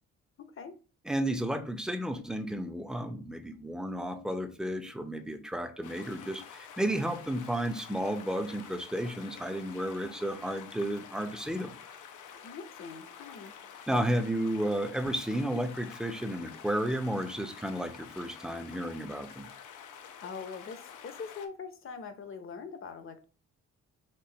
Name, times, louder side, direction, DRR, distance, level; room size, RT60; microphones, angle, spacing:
voice 1, 0.4-0.8 12.4-13.5 20.2-23.2, left 5 dB, 45° left, 0.8 m, -43 dB
voice 2, 1.1-11.7 13.9-19.5, right 1 dB, ahead, 0.6 m, -32 dB
sound 1, 5.8-21.5, left 7 dB, 85° left, 0.7 m, -49 dB
4.6 x 2.7 x 3.9 m
cardioid pair, 90°, 30 cm